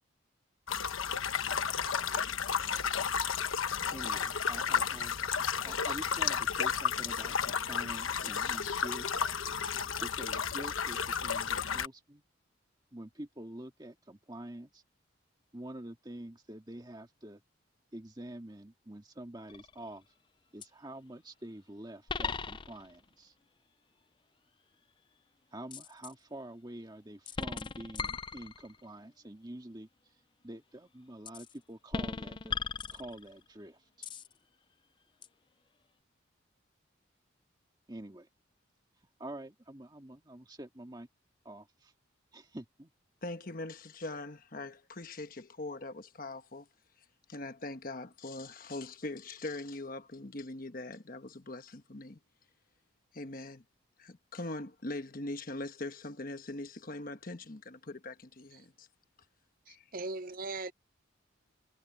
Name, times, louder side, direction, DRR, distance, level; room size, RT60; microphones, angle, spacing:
sound 1, 0.7-11.9, left 7 dB, 85° left, 1.2 m, -32 dB
voice 1, 3.9-5.1 5.6-9.1 10.0-12.2 12.9-14.8 15.5-17.4 17.9-20.0 20.5-23.3 25.5-29.9 30.4-32.6 32.9-34.1 37.9-38.3 39.2-41.1 41.5-41.9 42.3-42.9, right 1 dB, 20° right, 1.9 m, -46 dB
sound 2, 19.5-19.9 20.6-20.7 22.1-23.0 25.7-26.1 27.3-28.8 31.3-31.5 31.9-33.5 34.0-34.3 35.2-35.3, left 5 dB, 25° left, 0.4 m, -38 dB
voice 2, 43.2-46.7 47.3-52.2 53.1-53.6 54.0-58.9 59.7-59.9, left 2 dB, 45° left, 1.2 m, -42 dB
voice 3, 59.7-60.7, right 3 dB, 45° right, 0.6 m, -39 dB
head